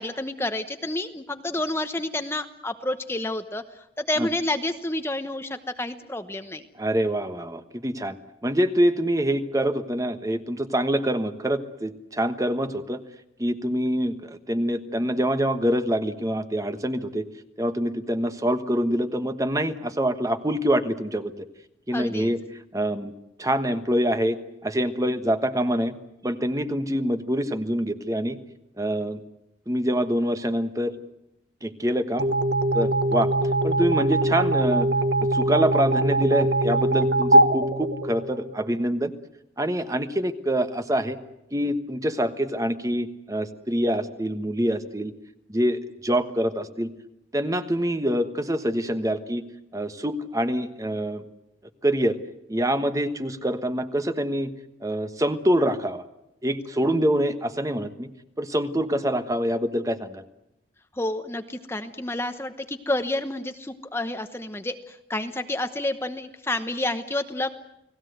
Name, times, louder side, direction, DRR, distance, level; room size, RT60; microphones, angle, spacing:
voice 1, 0.0-3.6 4.0-6.6 21.9-22.3 61.0-67.6, left 1 dB, 15° left, 8 dB, 1.0 m, -29 dB
voice 2, 6.7-8.2 8.4-13.0 13.4-17.2 17.6-21.5 21.9-22.4 22.7-23.1 23.4-24.4 24.6-25.9 26.2-28.4 28.8-29.2 29.7-30.9 31.6-32.3 32.7-33.3 33.6-34.9 35.2-39.1 39.6-41.2 41.5-45.1 45.5-46.9 47.3-49.4 49.7-51.2 51.8-52.2 52.5-54.5 54.8-56.0 56.4-58.1 58.4-60.2, equal, 15° right, 9 dB, 1.2 m, -25 dB
sound 1, 32.2-38.7, right 1 dB, 55° right, 1.7 m, -22 dB
30.0 x 19.0 x 8.0 m, 0.84 s
head